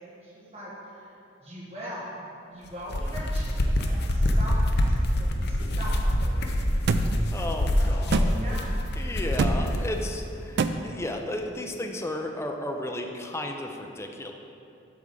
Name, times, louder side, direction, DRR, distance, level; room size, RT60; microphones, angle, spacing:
voice 1, 0.0-6.6 7.3-8.1 8.3-8.7, equal, 35° right, -8 dB, 1.6 m, -41 dB
sound 1, 2.7-9.9, left 1 dB, 55° left, 0.6 m, -25 dB
sound 2, 6.9-7.0 8.1-8.3 9.4-9.6 10.6-10.7, right 5 dB, 60° right, 0.3 m, -23 dB
voice 2, 7.3-8.3 9.0-14.3, left 1 dB, 15° left, 3 dB, 0.5 m, -34 dB
8.3 x 3.6 x 6.5 m, 2.7 s
head